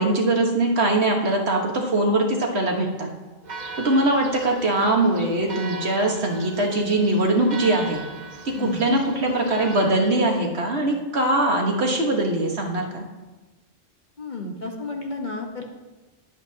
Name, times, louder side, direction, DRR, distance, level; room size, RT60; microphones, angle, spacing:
voice 1, 0.0-3.1 3.8-8.0 8.5-13.0, right 2 dB, 60° right, 1 dB, 1.7 m, -22 dB
Church bell, 3.4-9.9, right 3 dB, 40° right, 1.0 m, -38 dB
voice 2, 14.2-15.6, left 3 dB, 40° left, 1 dB, 1.4 m, -32 dB
21.0 x 8.4 x 2.9 m, 1.2 s
omnidirectional pair, 1.2 m